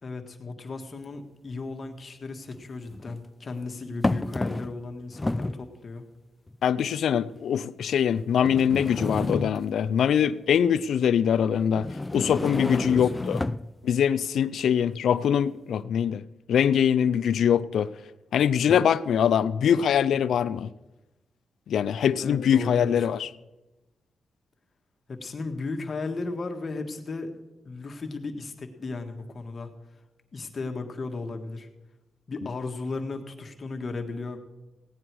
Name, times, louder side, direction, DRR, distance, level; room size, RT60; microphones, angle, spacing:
voice 1, 0.0-6.0 12.4-13.5 22.2-23.0 25.1-29.7 30.3-31.7 32.3-34.4, left 3 dB, 45° left, 1.6 m, -35 dB
sound 1, 1.0-1.1 2.5-3.2 4.0-4.9 5.1-5.7 6.5-6.6 7.4-7.5 8.4-9.9 11.8-13.7, left 2 dB, 20° left, 0.4 m, -30 dB
voice 2, 6.6-11.9 12.1-13.4 13.8-17.9 18.3-20.7 21.7-23.3, left 8 dB, 80° left, 0.4 m, -23 dB
16.5 x 9.8 x 4.7 m
cardioid pair, 80°, 0 cm